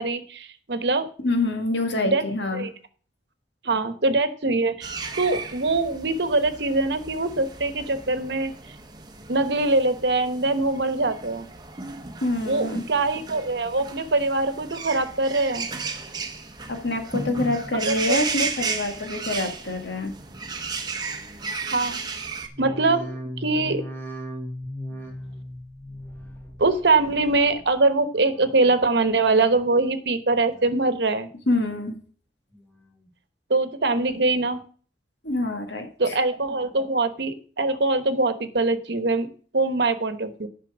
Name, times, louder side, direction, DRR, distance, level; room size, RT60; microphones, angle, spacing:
voice 1, 0.0-1.0 2.0-2.2 2.5-2.7 3.6-8.5 9.3-11.5 12.4-15.7 17.7-18.2 21.6-22.0 22.6-23.1 23.4-23.8 26.6-31.3 33.5-34.6 36.0-39.3 39.5-40.5, right 3 dB, 65° right, 10 dB, 1.1 m, -23 dB
voice 2, 1.2-2.7 12.2-12.9 16.7-20.1 31.5-32.0 35.2-36.2, left 2 dB, 70° left, 5 dB, 1.9 m, -26 dB
sound 1, 4.8-22.5, right 4 dB, 25° right, 0.9 m, -34 dB
sound 2, 22.5-27.8 28.1-28.7 29.2-29.9 30.3-31.0 31.4-32.1 32.5-33.1 33.6-33.7, equal, 15° left, 1.6 m, -39 dB
9.6 x 5.8 x 6.1 m, 0.43 s
head